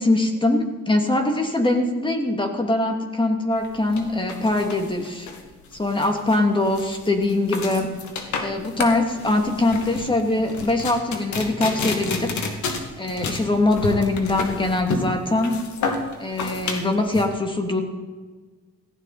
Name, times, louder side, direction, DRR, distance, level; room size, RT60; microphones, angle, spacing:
voice 1, 0.0-5.3 5.7-7.9 8.4-12.3 13.0-15.6 16.2-17.8, left 2 dB, 15° left, 3 dB, 2.7 m, -22 dB
sound 1, 3.6-17.2, left 4 dB, 75° left, 2.5 m, -31 dB
17.5 x 16.5 x 4.4 m, 1.4 s
cardioid pair, 90°, 30 cm